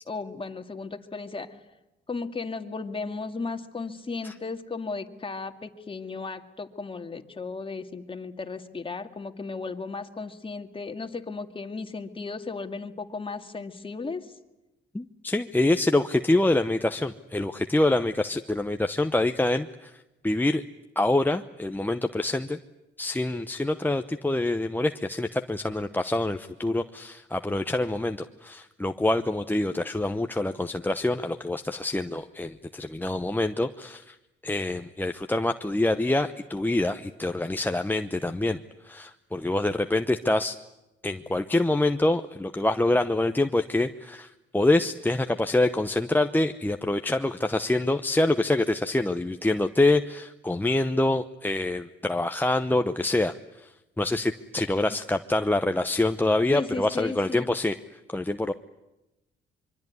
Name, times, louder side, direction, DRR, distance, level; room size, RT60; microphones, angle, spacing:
voice 1, 0.1-1.6 2.1-14.3 56.5-57.5, left 4 dB, 25° left, 7 dB, 2.2 m, -35 dB
voice 2, 14.9-20.6 21.0-22.6 23.0-34.2 34.4-40.6 41.0-57.8 58.1-58.5, left 2 dB, 10° left, 7 dB, 0.9 m, -26 dB
25.0 x 24.0 x 9.6 m, 0.98 s
cardioid pair, 90°, 20 cm